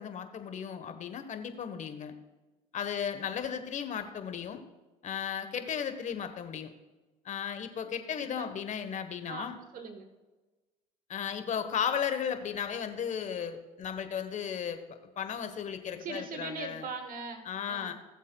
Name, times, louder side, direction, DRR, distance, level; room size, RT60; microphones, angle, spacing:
voice 1, 0.0-2.1 2.7-4.6 5.0-6.7 7.2-9.6 11.1-14.8 15.2-16.9 17.4-17.9, left 8 dB, 45° left, 8 dB, 1.1 m, -35 dB
voice 2, 9.3-10.1 16.0-17.9, right 4 dB, 50° right, 6 dB, 1.2 m, -40 dB
18.5 x 7.3 x 2.3 m, 1.2 s
supercardioid pair, 95°, 18 cm